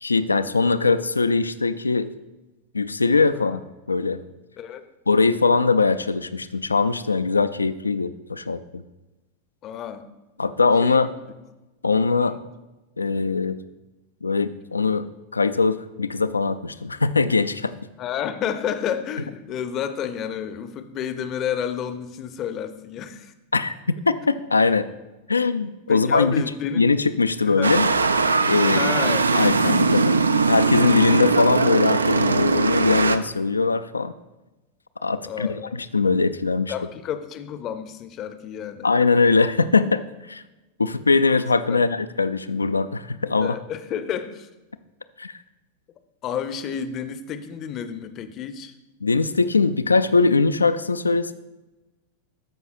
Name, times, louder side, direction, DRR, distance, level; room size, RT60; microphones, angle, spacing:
voice 1, 0.0-2.1 2.7-3.6 3.9-4.2 5.1-8.8 10.4-11.1 11.8-12.4 13.0-13.6 14.2-15.1 15.3-17.7 23.5-23.7 24.1-24.9 25.3-26.4 26.8-27.9 28.5-28.9 29.3-34.1 35.0-35.6 35.9-36.7 38.8-40.0 40.3-40.4 40.8-43.6 45.2-45.3 49.0-51.3, left 4 dB, 80° left, 13 dB, 0.3 m, -21 dB
voice 2, 9.6-10.1 10.8-11.2 12.1-12.4 18.0-23.3 25.9-26.9 27.4-27.8 28.6-30.1 35.2-35.8 36.7-38.9 41.7-41.9 43.4-44.5 46.2-48.7, left 8 dB, 35° left, 11 dB, 0.6 m, -31 dB
sound 1, 27.6-33.2, right 4 dB, 75° right, 0.3 m, -20 dB
13.0 x 5.5 x 2.5 m, 1.1 s
figure-of-eight pair, 90°, 0 cm